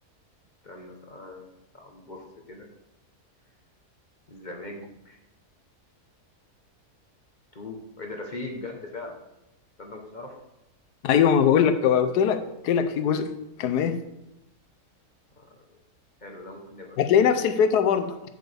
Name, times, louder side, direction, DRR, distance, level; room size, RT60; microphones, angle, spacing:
voice 1, 0.6-2.2 2.5-2.7 4.3-5.2 7.5-9.2 9.8-10.4 15.4-15.8 16.2-17.0, left 2 dB, 35° left, 1 dB, 0.9 m, -40 dB
voice 2, 11.0-13.3 13.6-14.0 17.0-18.2, left 8 dB, 85° left, 10 dB, 1.2 m, -21 dB
8.2 x 7.9 x 3.4 m, 0.88 s
omnidirectional pair, 1.7 m